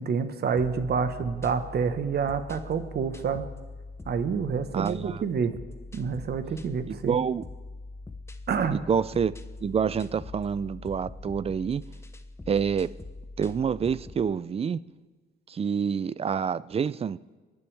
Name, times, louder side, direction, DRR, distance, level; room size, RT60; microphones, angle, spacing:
voice 1, 0.0-3.4 4.1-5.5 5.9-7.2 8.5-8.8, right 6 dB, 55° right, 10 dB, 1.3 m, -28 dB
sound 1, 0.6-14.3, left 2 dB, 15° left, 0.9 m, -43 dB
voice 2, 4.7-5.2 6.9-7.4 8.7-9.3 9.6-11.8 12.5-12.9 13.4-14.8 15.5-17.4, right 7 dB, 30° right, 19 dB, 0.4 m, -27 dB
24.5 x 11.0 x 3.4 m, 1.4 s
cardioid pair, 90°, 20 cm